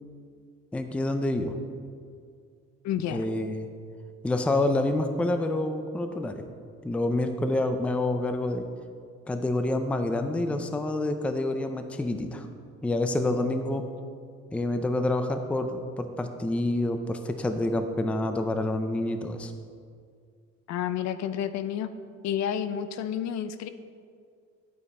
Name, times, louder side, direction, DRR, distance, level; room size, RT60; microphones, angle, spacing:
voice 1, 0.7-1.5 3.1-3.7 4.2-6.5 6.8-8.7 9.3-12.5 12.8-13.8 14.5-19.5, left 2 dB, 5° left, 7 dB, 0.4 m, -27 dB
voice 2, 2.8-3.2 20.7-21.9 22.2-23.7, left 9 dB, 70° left, 12 dB, 0.6 m, -30 dB
11.0 x 8.6 x 4.2 m, 2.2 s
cardioid pair, 175°, 29 cm